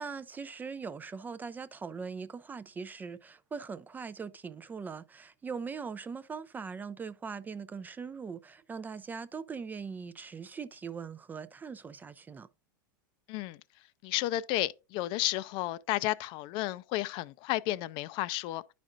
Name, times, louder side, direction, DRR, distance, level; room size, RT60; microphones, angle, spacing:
voice 1, 0.0-12.5, right 5 dB, 15° right, 0.3 m, -41 dB
voice 2, 14.0-18.6, left 16 dB, 50° left, 0.5 m, -32 dB
10.5 x 5.1 x 2.4 m
supercardioid pair, 120°, 11 cm